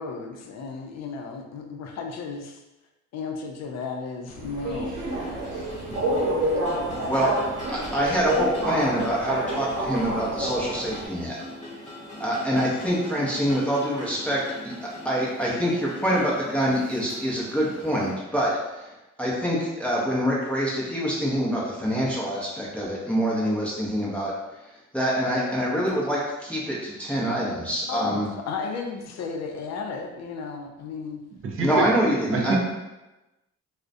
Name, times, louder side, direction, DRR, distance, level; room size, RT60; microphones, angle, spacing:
voice 1, 0.0-2.6 3.1-5.0 27.9-28.2 28.5-31.2, left 4 dB, 60° left, 2 dB, 0.5 m, -34 dB
Subway metro underground, 4.3-11.1, right 1 dB, 80° right, 0.8 m, -28 dB
sound 1, 5.1-18.1, left 1 dB, 25° left, 0.9 m, -41 dB
voice 2, 7.7-11.4 12.2-18.9 19.2-24.3 24.9-28.3 31.6-32.6, equal, 5° left, -6 dB, 0.6 m, -25 dB
voice 3, 31.4-32.0 32.3-32.6, right 4 dB, 45° right, 0 dB, 0.5 m, -26 dB
2.4 x 2.1 x 2.5 m, 1.0 s
cardioid pair, 90°, 30 cm